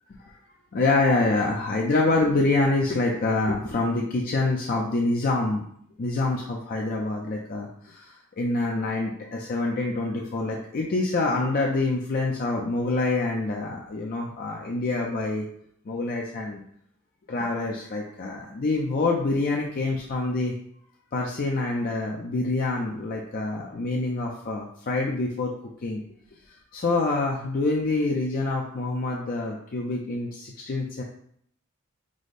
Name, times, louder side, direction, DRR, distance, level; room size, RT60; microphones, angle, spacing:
voice 1, 0.7-5.6 6.0-15.5 15.9-16.6 17.3-20.5 21.1-25.5 25.8-26.0 26.7-31.0, left 2 dB, 45° left, -1 dB, 0.4 m, -26 dB
4.8 x 2.0 x 4.1 m, 0.66 s
head